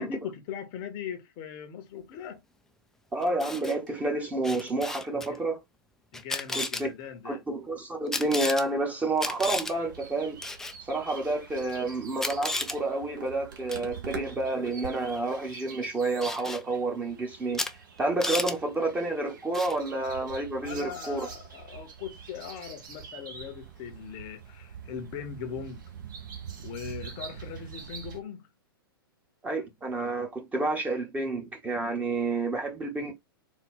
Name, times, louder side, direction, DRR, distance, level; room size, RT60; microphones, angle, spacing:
voice 1, 0.0-2.4 5.1-5.4 6.1-7.4 20.6-25.8 26.6-28.5, left 7 dB, 35° left, 0.8 m, -40 dB
voice 2, 3.1-5.6 6.5-6.9 7.2-10.4 10.9-17.6 18.0-21.3 29.4-33.1, right 2 dB, 10° right, 1.0 m, -29 dB
Camera, 3.2-3.7 4.4-5.3 6.1-6.8 8.1-8.6 9.2-9.7 10.4-10.8 11.7-11.8 12.2-12.8 13.7-13.9 16.2-16.6 17.5-17.7 18.0-18.5 19.5-19.8, left 2 dB, 5° left, 0.4 m, -33 dB
sound 1, 9.4-28.2, right 6 dB, 55° right, 1.2 m, -45 dB
4.0 x 2.3 x 3.6 m
figure-of-eight pair, 105°, 12 cm